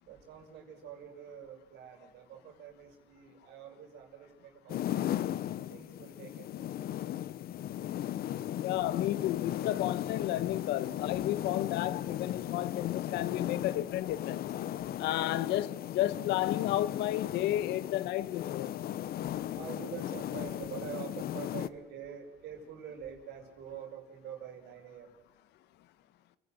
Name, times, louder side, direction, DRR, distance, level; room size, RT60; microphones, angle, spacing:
voice 1, 0.0-5.1 5.7-6.6 8.3-8.9 10.2-10.3 11.1-11.3 12.2-12.3 12.6-12.7 14.4-15.1 18.8-25.1, right 8 dB, 80° right, 6.1 m, -47 dB
sound 1, 4.7-21.7, left 12 dB, 65° left, 1.1 m, -36 dB
voice 2, 8.6-14.5 15.0-18.7, left 14 dB, 85° left, 1.3 m, -32 dB
29.5 x 18.0 x 6.6 m
cardioid pair, 110°, 17 cm